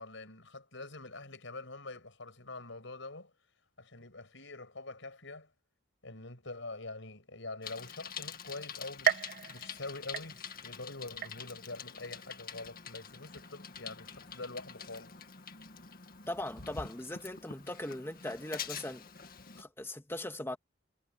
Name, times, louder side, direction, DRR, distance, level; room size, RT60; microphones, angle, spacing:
voice 1, 0.0-3.3 3.8-5.5 6.0-15.2, left 2 dB, 65° left, 7.5 m, -45 dB
Bicycle, 7.6-19.6, left 7 dB, 45° left, 2.0 m, -46 dB
sound 1, 9.0-10.8 11.2-11.8 12.3-12.4 13.4-13.5, right 9 dB, 45° right, 0.5 m, -34 dB
voice 2, 16.3-19.0 19.6-20.6, left 1 dB, 10° left, 1.7 m, -39 dB
head